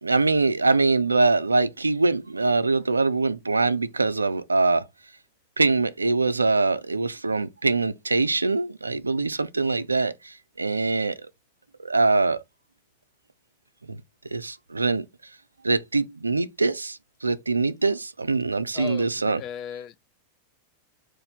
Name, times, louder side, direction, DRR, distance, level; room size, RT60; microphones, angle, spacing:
voice 1, 0.0-4.8 5.6-11.2 11.8-12.4 13.9-14.0 14.3-15.1 15.6-19.4, right 3 dB, 90° right, 0.4 m, -23 dB
voice 2, 18.7-20.0, left 9 dB, 40° left, 0.6 m, -36 dB
3.8 x 2.5 x 4.0 m
figure-of-eight pair, 90°, 0 cm